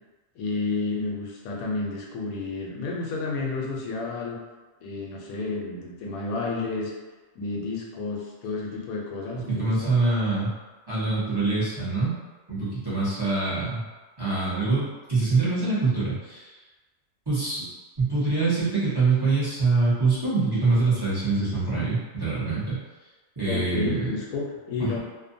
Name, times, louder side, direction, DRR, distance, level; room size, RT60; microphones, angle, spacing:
voice 1, 0.4-4.4 4.8-6.9 7.3-9.9 23.5-25.0, left 3 dB, 90° left, -1 dB, 1.0 m, -31 dB
voice 2, 9.5-10.5 10.9-12.1 12.5-13.8 14.2-16.5 17.3-17.7 18.0-22.8 23.4-24.1 24.8-25.0, right 3 dB, 20° right, -12 dB, 0.7 m, -24 dB
2.6 x 2.1 x 2.5 m, 1.2 s
omnidirectional pair, 1.4 m